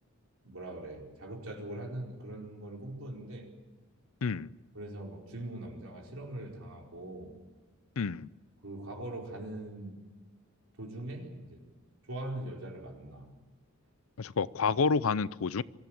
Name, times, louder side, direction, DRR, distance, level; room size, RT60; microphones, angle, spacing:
voice 1, 0.4-3.5 4.7-7.4 8.6-10.0 10.8-11.6 12.1-13.3, right 1 dB, 70° right, 0 dB, 4.7 m, -41 dB
voice 2, 8.0-8.3 14.2-15.6, left 5 dB, 70° left, 19 dB, 0.6 m, -29 dB
24.0 x 14.0 x 9.1 m, 1.3 s
head